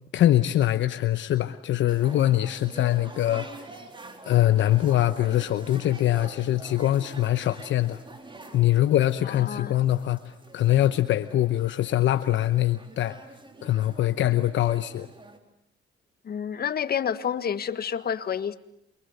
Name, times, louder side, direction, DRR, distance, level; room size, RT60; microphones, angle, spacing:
voice 1, 0.1-3.7 4.3-8.0 8.5-13.2 13.6-15.1, left 13 dB, 70° left, 10 dB, 1.0 m, -23 dB
sound 1, 1.9-15.4, right 2 dB, 25° right, 4.1 m, -46 dB
voice 2, 9.2-9.8 16.2-18.6, left 8 dB, 50° left, 11 dB, 1.6 m, -29 dB
28.5 x 24.0 x 8.0 m, 0.75 s
cardioid pair, 90°, 20 cm